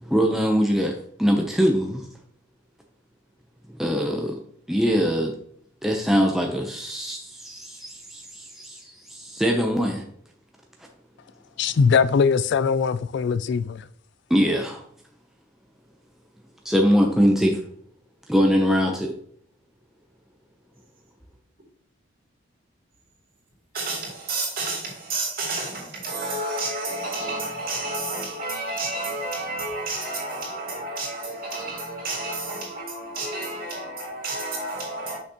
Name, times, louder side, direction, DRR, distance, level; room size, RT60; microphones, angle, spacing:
voice 1, 0.0-2.1 3.8-4.4 4.7-5.3 5.8-10.0 14.3-14.8 16.6-17.6 18.3-19.1, equal, ahead, 0.6 m, -22 dB
voice 2, 11.6-13.9, left 5 dB, 60° left, 0.3 m, -21 dB
voice 3, 23.7-35.2, right 2 dB, 50° right, 2.5 m, -30 dB
6.4 x 5.8 x 2.9 m
head